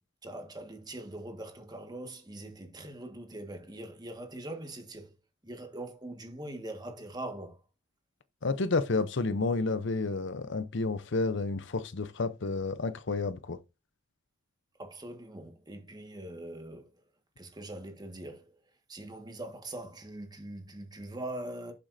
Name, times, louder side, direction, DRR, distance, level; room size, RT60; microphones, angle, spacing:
voice 1, 0.2-5.1 5.4-7.6 14.8-17.0 17.4-18.6 18.9-21.7, right 1 dB, 20° right, 1.7 m, -42 dB
voice 2, 8.4-13.6, left 3 dB, 60° left, 0.7 m, -30 dB
11.5 x 7.3 x 2.7 m
head